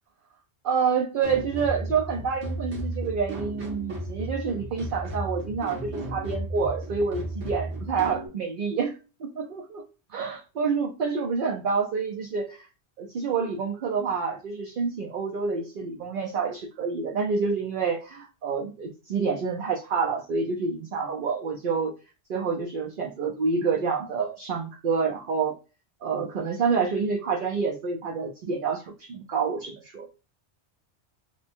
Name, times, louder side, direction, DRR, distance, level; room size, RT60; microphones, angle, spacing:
voice 1, 0.6-9.8 10.1-12.6 13.0-21.9 22.3-25.5 26.0-30.1, right 5 dB, 55° right, 1 dB, 0.7 m, -28 dB
sound 1, 1.2-8.3, right 1 dB, 75° right, 1.3 m, -34 dB
2.9 x 2.2 x 4.2 m, 0.32 s
omnidirectional pair, 1.2 m